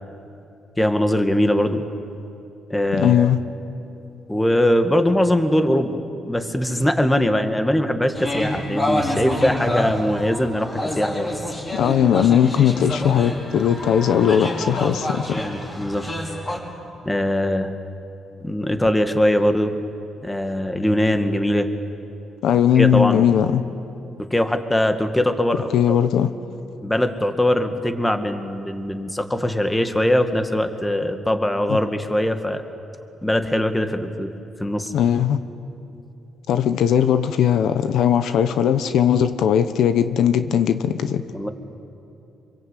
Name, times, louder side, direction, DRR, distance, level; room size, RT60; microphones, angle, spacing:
voice 1, 0.8-1.8 2.7-3.3 4.3-6.0 6.3-11.3 15.3-16.1 17.0-17.8 18.4-19.8 20.2-21.7 22.8-23.2 24.3-26.0 26.8-32.6 33.2-34.3 34.6-34.9 41.3-41.5, left 1 dB, 10° left, 7 dB, 1.9 m, -21 dB
voice 2, 2.9-3.4 11.7-15.4 22.4-23.6 25.7-26.3 31.7-31.8 34.9-35.4 36.5-41.2, left 9 dB, 75° left, 10 dB, 1.0 m, -18 dB
sound 1, 8.1-16.6, left 1 dB, 30° left, 5.9 m, -28 dB
26.0 x 23.0 x 8.4 m, 2.7 s
cardioid pair, 90°, 0 cm